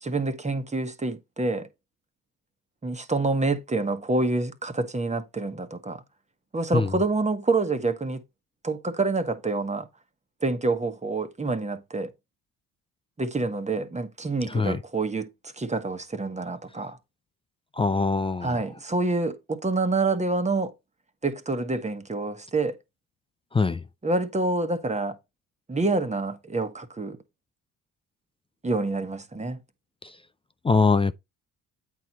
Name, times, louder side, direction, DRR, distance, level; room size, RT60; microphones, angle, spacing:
voice 1, 0.0-1.7 2.8-6.0 6.5-8.2 8.6-9.9 10.4-12.1 13.2-15.3 15.6-17.0 18.4-20.7 21.2-22.8 24.0-25.2 25.7-27.2 28.6-29.6, right 3 dB, 20° right, 1.3 m, -27 dB
voice 2, 14.5-14.8 17.8-18.6 23.5-23.8 30.6-31.1, left 4 dB, 15° left, 0.4 m, -22 dB
8.4 x 4.6 x 4.1 m
supercardioid pair, 75°, 38 cm